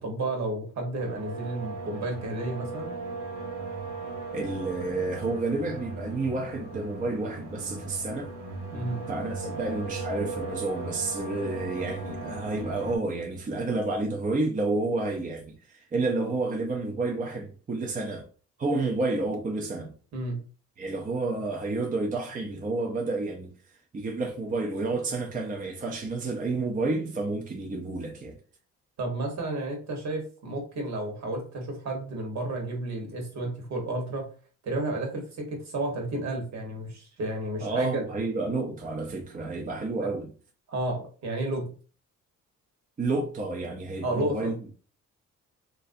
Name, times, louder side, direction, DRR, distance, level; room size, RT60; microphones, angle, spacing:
voice 1, 0.0-2.9 8.7-9.0 20.1-20.4 29.0-34.3 34.6-38.0 40.0-40.1 40.7-41.7 44.0-44.5, right 2 dB, 65° right, 1.2 m, -32 dB
sound 1, 1.0-13.0, right 3 dB, 80° right, 1.4 m, -37 dB
voice 2, 4.3-8.3 9.1-15.4 15.7-18.3 18.6-19.9 20.8-23.5 23.9-28.4 37.6-40.3 43.0-44.7, right 3 dB, 25° right, 0.6 m, -30 dB
3.1 x 2.5 x 2.5 m
cardioid pair, 90°, 30 cm